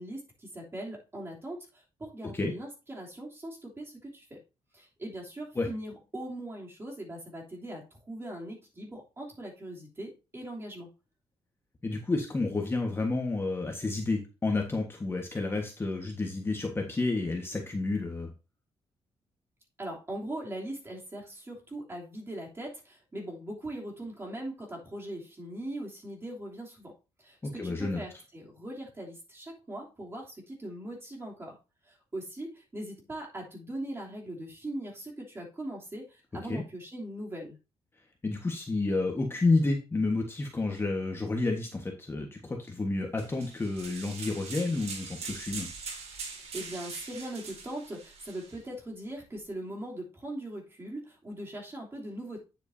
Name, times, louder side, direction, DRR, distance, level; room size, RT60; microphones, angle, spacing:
voice 1, 0.0-4.4 4.7-10.9 19.8-26.9 27.2-31.6 31.9-37.6 46.5-52.4, right 1 dB, 25° right, -2 dB, 3.1 m, -40 dB
voice 2, 11.8-18.3 27.4-28.0 36.5-36.6 38.2-45.7, left 3 dB, 20° left, 2 dB, 1.4 m, -30 dB
sound 1, 43.2-48.6, right 4 dB, 70° right, 2.3 m, -42 dB
9.3 x 8.0 x 2.8 m, 0.30 s
cardioid pair, 120°, 11 cm